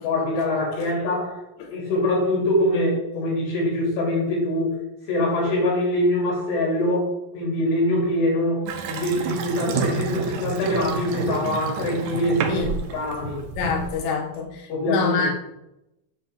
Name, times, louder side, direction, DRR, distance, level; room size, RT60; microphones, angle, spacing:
voice 1, 0.0-1.4 1.7-4.8 5.1-7.1 7.3-12.6 12.9-13.4 14.7-15.3, left 1 dB, 90° left, -3 dB, 5.0 m, -23 dB
Water tap faucet / Sink (filling or washing) / Bathtub (filling or washing), 8.7-14.1, right 6 dB, 75° right, 2.0 m, -30 dB
voice 2, 13.6-15.3, left 4 dB, 70° left, 1 dB, 3.1 m, -26 dB
9.8 x 3.3 x 6.8 m, 0.87 s
omnidirectional pair, 4.7 m